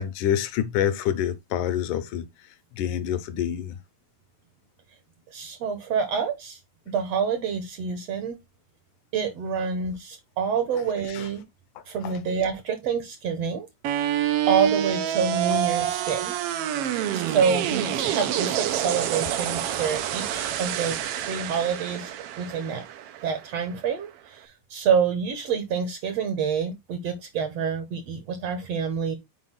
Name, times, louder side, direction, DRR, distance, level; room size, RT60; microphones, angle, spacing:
voice 1, 0.0-2.3 2.7-3.8 11.1-11.3 11.8-12.2 16.9-17.0, left 10 dB, 85° left, 2.2 m, -27 dB
voice 2, 5.3-6.6 6.9-8.4 9.1-11.4 11.8-13.7 14.5-16.3 17.1-22.8 23.2-29.2, right 6 dB, 65° right, 1.8 m, -27 dB
sound 1, 13.8-23.9, right 11 dB, 85° right, 1.3 m, -27 dB
6.3 x 4.7 x 3.7 m
omnidirectional pair, 3.7 m